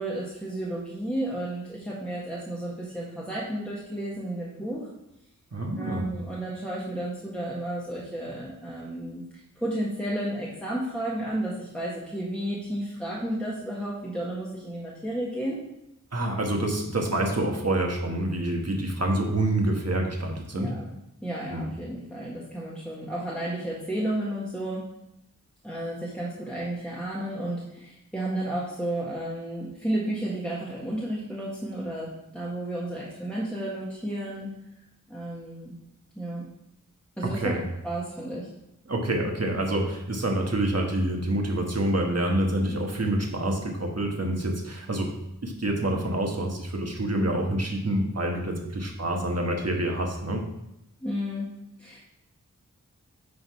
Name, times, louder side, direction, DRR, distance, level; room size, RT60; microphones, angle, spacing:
voice 1, 0.0-4.8 5.8-9.2 9.5-15.6 20.5-20.9 21.2-24.8 25.6-34.5 35.1-35.7 36.1-36.5 37.2-37.5 37.8-38.5 51.0-51.5 51.8-52.0, right 1 dB, 5° left, -6 dB, 1.7 m, -32 dB
voice 2, 5.5-6.0 16.1-20.8 21.5-21.7 37.2-37.7 38.9-45.1 45.4-50.4, right 1 dB, 50° right, 1 dB, 1.4 m, -27 dB
9.8 x 3.9 x 4.7 m, 0.83 s
wide cardioid pair, 70°, 32 cm